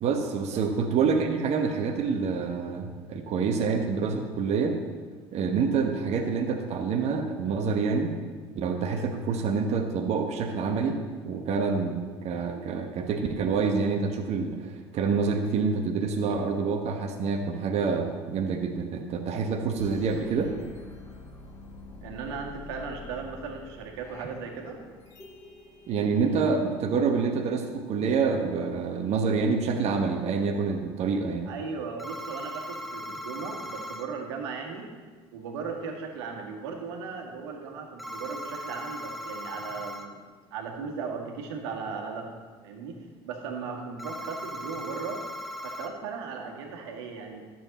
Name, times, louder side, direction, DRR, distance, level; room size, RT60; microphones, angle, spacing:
voice 1, 0.0-4.8 5.3-8.1 8.5-11.0 11.2-20.5 25.9-31.5, right 5 dB, 50° right, 3 dB, 1.2 m, -27 dB
sound 1, 19.8-26.3, left 3 dB, 20° left, 2.2 m, -46 dB
voice 2, 22.0-24.8 31.5-34.9 35.3-40.2 40.5-42.3 42.6-43.0 43.2-45.2 45.6-47.4, right 5 dB, 70° right, 1 dB, 1.8 m, -37 dB
sound 2, 32.0-34.1 38.0-40.1 44.0-45.9, equal, ahead, 1.2 m, -38 dB
12.0 x 7.6 x 4.2 m, 1.5 s
hypercardioid pair, 65°, 14 cm